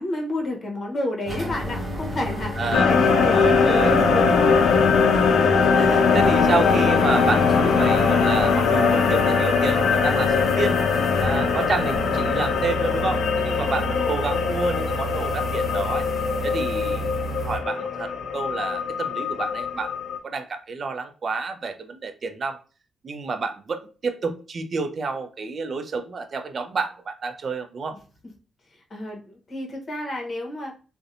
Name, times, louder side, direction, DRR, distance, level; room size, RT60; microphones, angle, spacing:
voice 1, 0.0-4.9 13.7-14.2 28.9-30.7, left 1 dB, 45° left, 1 dB, 0.8 m, -30 dB
sound 1, 1.3-17.6, left 1 dB, 30° right, 0.8 m, -30 dB
voice 2, 2.6-3.0 3.3-3.9 5.7-10.8 11.2-16.1 16.4-22.6 23.0-28.0, right 4 dB, 50° right, 8 dB, 0.4 m, -29 dB
sound 2, 2.7-20.2, left 5 dB, 85° left, 0.4 m, -21 dB
sound 3, 6.4-18.1, equal, 5° right, 0.9 m, -37 dB
2.6 x 2.1 x 2.5 m, 0.35 s
cardioid pair, 95°, 0 cm